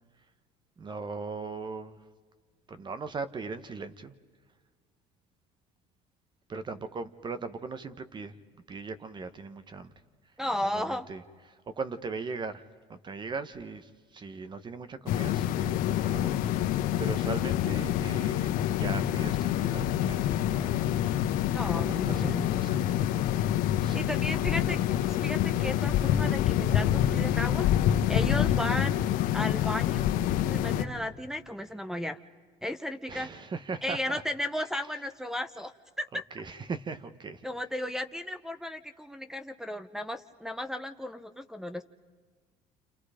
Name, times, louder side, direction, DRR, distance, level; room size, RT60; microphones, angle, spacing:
voice 1, 0.8-2.0 2.7-4.1 6.5-8.3 8.7-9.9 10.6-11.2 11.5-12.6 12.9-21.0 21.7-22.8 23.8-24.1 33.1-34.2 36.1-37.5, right 4 dB, 30° right, 12 dB, 1.3 m, -39 dB
voice 2, 10.4-11.1 21.5-22.5 23.9-29.0 29.3-30.0 30.4-32.2 32.6-33.3 33.8-36.2 37.4-41.8, left 1 dB, 5° right, 5 dB, 0.9 m, -34 dB
sound 1, 15.1-30.8, left 11 dB, 70° left, 1.3 m, -27 dB
29.5 x 28.5 x 5.1 m, 1.5 s
supercardioid pair, 100°, 15 cm